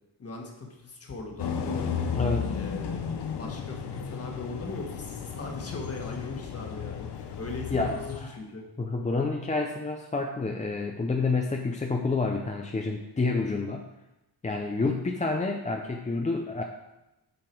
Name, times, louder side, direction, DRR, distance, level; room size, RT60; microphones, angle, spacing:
voice 1, 0.2-1.9 2.5-3.0 3.3-8.6 13.5-13.6, left 3 dB, 35° left, 1 dB, 1.6 m, -39 dB
sound 1, 1.4-8.2, left 7 dB, 75° left, 0.9 m, -34 dB
voice 2, 2.1-2.5 7.7-8.4 8.8-13.9 14.4-16.6, left 3 dB, 20° left, 2 dB, 0.5 m, -29 dB
8.7 x 5.8 x 4.6 m, 0.94 s
wide cardioid pair, 140°, 41 cm